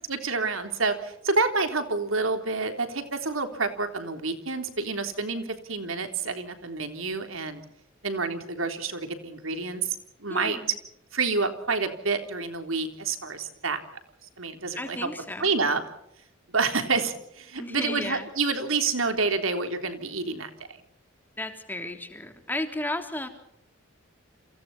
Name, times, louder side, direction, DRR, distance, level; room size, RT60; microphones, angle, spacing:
voice 1, 0.0-7.6 8.0-10.8 11.1-13.8 14.4-15.1 15.4-15.8 16.5-20.5, right 4 dB, 80° right, 7 dB, 3.6 m, -28 dB
voice 2, 10.3-10.7 14.8-15.5 17.6-18.3 21.4-23.3, left 1 dB, 10° left, 6 dB, 3.2 m, -33 dB
29.5 x 27.5 x 4.3 m, 0.75 s
head